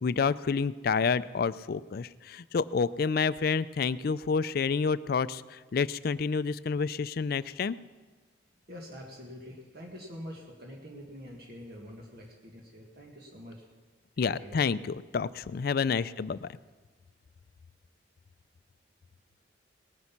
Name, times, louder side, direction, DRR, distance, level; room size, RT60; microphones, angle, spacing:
voice 1, 0.0-7.8 14.2-16.5, left 5 dB, 55° left, 16 dB, 0.4 m, -29 dB
voice 2, 8.7-13.7 14.2-14.6, equal, 55° right, -1 dB, 1.7 m, -45 dB
19.0 x 9.6 x 5.9 m, 1.4 s
head